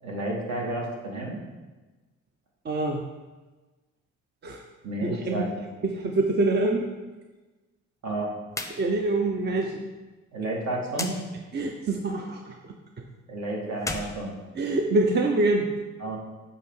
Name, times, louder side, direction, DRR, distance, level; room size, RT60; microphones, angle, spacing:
voice 1, 0.0-1.4 4.8-5.5 8.0-8.4 10.3-11.2 13.3-14.3 16.0-16.2, right 1 dB, 65° right, -2 dB, 1.9 m, -31 dB
voice 2, 2.6-3.1 4.4-4.6 5.0-5.5 5.8-6.9 8.7-9.8 11.5-13.1 14.5-15.7, right 2 dB, 35° right, 2 dB, 0.6 m, -25 dB
sound 1, 8.5-8.8 9.1-9.2 10.9-11.2 13.7-15.0, left 2 dB, 10° left, 0.6 m, -35 dB
8.1 x 2.9 x 5.5 m, 1.2 s
cardioid pair, 90°, 30 cm